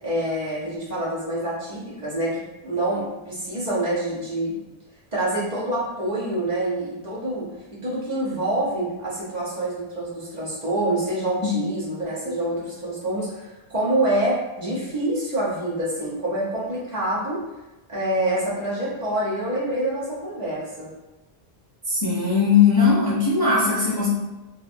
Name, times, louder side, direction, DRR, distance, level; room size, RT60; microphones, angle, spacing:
voice 1, 0.0-4.6 5.1-17.4 17.9-20.9, right 1 dB, 45° right, -7 dB, 0.8 m, -26 dB
voice 2, 21.8-24.1, left 5 dB, 30° left, -9 dB, 0.5 m, -19 dB
2.8 x 2.1 x 2.5 m, 1.0 s
omnidirectional pair, 1.1 m